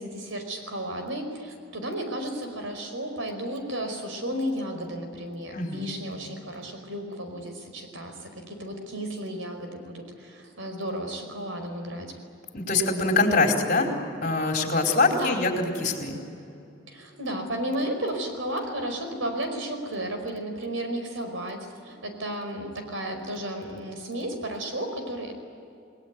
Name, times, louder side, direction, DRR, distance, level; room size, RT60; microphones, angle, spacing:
voice 1, 0.0-12.1 14.8-15.5 16.9-25.3, right 1 dB, 85° right, 5 dB, 5.1 m, -33 dB
voice 2, 5.5-5.8 12.5-13.9 14.2-16.2, left 3 dB, 40° left, 1 dB, 4.6 m, -24 dB
29.0 x 19.5 x 9.7 m, 2.6 s
head